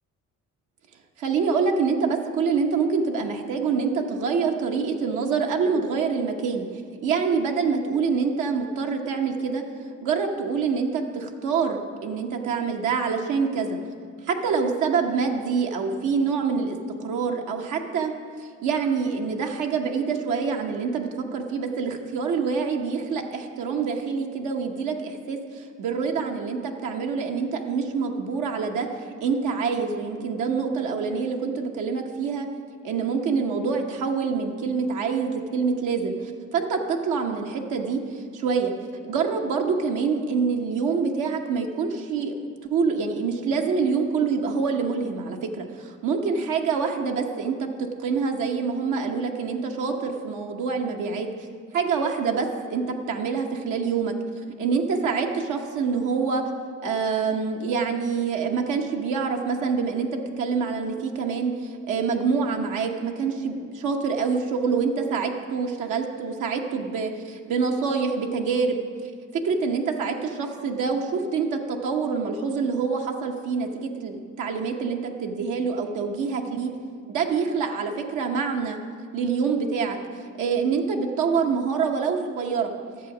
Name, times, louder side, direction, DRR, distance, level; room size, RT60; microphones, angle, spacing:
voice 1, 1.2-6.7 7.0-9.6 10.0-13.8 14.2-18.1 18.6-28.9 29.2-32.5 32.8-38.7 39.0-51.3 51.7-54.1 54.6-56.4 56.8-68.8 69.3-76.7 77.1-78.8 79.1-80.0 80.4-82.7, right 5 dB, 90° right, 2 dB, 1.0 m, -26 dB
12.0 x 7.1 x 5.9 m, 2.1 s
cardioid pair, 90°, 30 cm